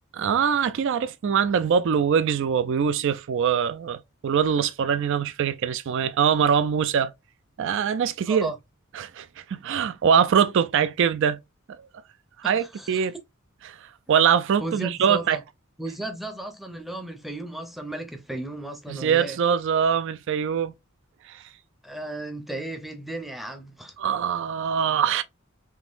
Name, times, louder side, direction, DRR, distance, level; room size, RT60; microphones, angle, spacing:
voice 1, 0.2-7.1 7.6-8.5 8.9-11.4 11.8-11.9 12.4-13.1 13.7-13.8 14.1-15.4 18.9-20.7 21.3-21.4 24.0-25.2, right 7 dB, 60° right, 0.4 m, -23 dB
voice 2, 12.4-13.1 14.6-15.4 15.8-19.4 21.8-23.9, right 1 dB, ahead, 0.6 m, -35 dB
3.7 x 2.9 x 2.4 m
head